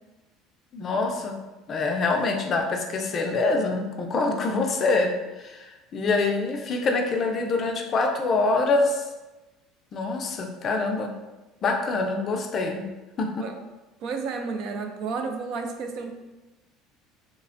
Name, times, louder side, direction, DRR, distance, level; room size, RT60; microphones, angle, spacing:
voice 1, 0.7-1.4 1.7-9.0 9.9-11.1 11.6-12.8 13.2-13.3, left 3 dB, 40° left, 3 dB, 0.4 m, -25 dB
voice 2, 14.0-16.1, right 4 dB, 60° right, 5 dB, 0.3 m, -32 dB
3.1 x 2.1 x 2.5 m, 1.1 s
supercardioid pair, 120°, 0 cm